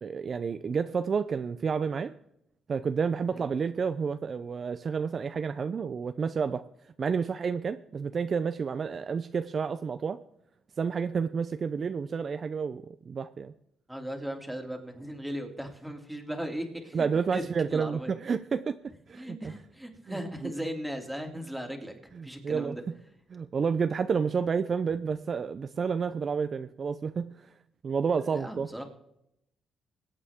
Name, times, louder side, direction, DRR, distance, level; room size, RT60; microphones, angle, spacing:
voice 1, 0.0-2.1 2.7-6.6 7.0-10.2 10.8-13.5 16.9-18.8 19.1-19.5 20.1-20.5 22.1-22.9 23.3-27.5 27.8-28.7, right 6 dB, 45° right, 11 dB, 0.5 m, -30 dB
voice 2, 13.9-18.1 19.1-22.8 28.2-28.8, equal, ahead, 2 dB, 2.9 m, -37 dB
21.5 x 8.9 x 3.6 m, 0.78 s
cardioid pair, 90°, 0 cm